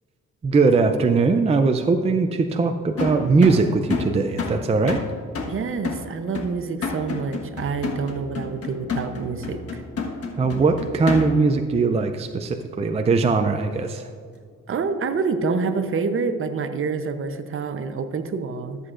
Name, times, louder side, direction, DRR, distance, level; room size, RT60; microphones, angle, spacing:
voice 1, 0.4-5.0 10.4-14.0, right 4 dB, 20° right, 6 dB, 0.4 m, -20 dB
sound 1, 3.0-11.6, left 4 dB, 50° left, 1.4 m, -30 dB
voice 2, 5.4-9.8 14.7-18.8, right 5 dB, 45° right, 9 dB, 0.8 m, -27 dB
13.5 x 7.9 x 2.5 m, 2.1 s
cardioid pair, 90°, 30 cm